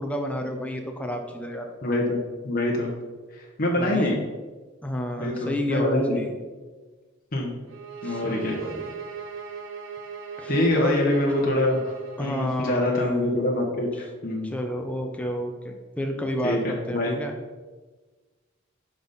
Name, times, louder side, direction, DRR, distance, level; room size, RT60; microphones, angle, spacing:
voice 1, 0.0-1.7 3.8-4.2 4.8-6.3 8.0-8.9 10.4-11.0 12.2-13.1 14.4-17.3, equal, 5° left, 3 dB, 0.8 m, -30 dB
voice 2, 1.8-2.2 2.4-2.9 3.6-4.2 5.2-6.2 7.3-7.5 8.0-8.5 10.5-11.9 12.2-14.5 16.4-17.1, left 1 dB, 45° left, -2 dB, 1.2 m, -25 dB
sound 1, 7.7-12.6, right 6 dB, 80° right, 1.1 m, -38 dB
8.6 x 5.5 x 4.2 m, 1.3 s
head